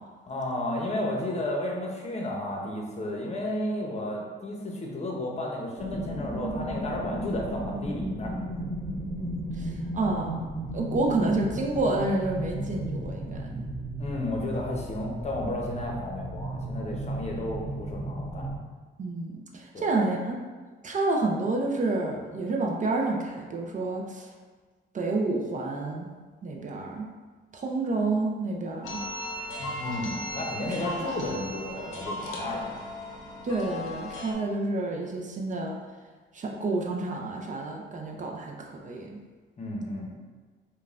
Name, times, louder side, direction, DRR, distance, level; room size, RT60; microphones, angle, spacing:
voice 1, 0.3-8.3 14.0-18.5 19.7-19.9 29.8-32.7 39.6-40.1, left 1 dB, 35° left, -1 dB, 0.7 m, -32 dB
sound 1, 5.8-18.6, right 1 dB, 15° right, 1.1 m, -35 dB
voice 2, 9.6-10.3 10.7-13.6 19.0-20.4 20.8-24.3 24.9-26.1 26.4-27.1 27.5-29.0 30.8-31.1 33.4-35.8 36.3-39.2, right 2 dB, 40° right, 0 dB, 0.5 m, -29 dB
sound 2, 28.8-34.3, left 1 dB, 90° left, 0.6 m, -36 dB
5.1 x 2.2 x 2.5 m, 1.4 s
cardioid pair, 90°, 20 cm